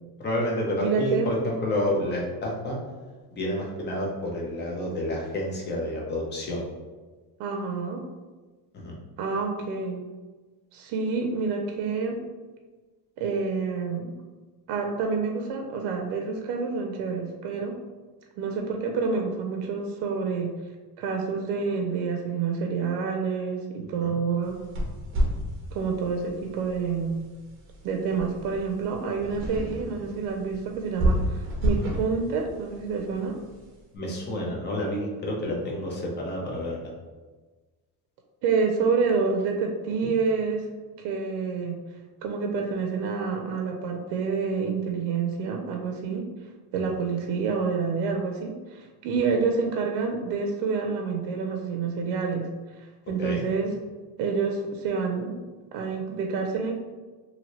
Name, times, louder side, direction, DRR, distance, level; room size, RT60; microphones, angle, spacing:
voice 1, 0.2-2.8 3.4-6.7 8.7-8.9 24.0-24.2 33.9-36.9 53.2-53.4, left 1 dB, 25° left, -2 dB, 0.6 m, -29 dB
voice 2, 0.8-1.3 7.4-8.1 9.2-10.0 10.7-12.2 13.2-14.1 14.7-17.8 18.4-20.6 21.0-24.6 25.7-27.2 27.8-33.4 38.4-40.7 41.0-41.8 42.2-46.3 46.7-53.8 54.2-55.4 55.7-56.7, right 5 dB, 80° right, 3 dB, 0.5 m, -28 dB
sound 1, 24.4-33.8, equal, 30° right, 0.7 m, -31 dB
2.7 x 2.7 x 3.0 m, 1.3 s
cardioid pair, 155°, 40 cm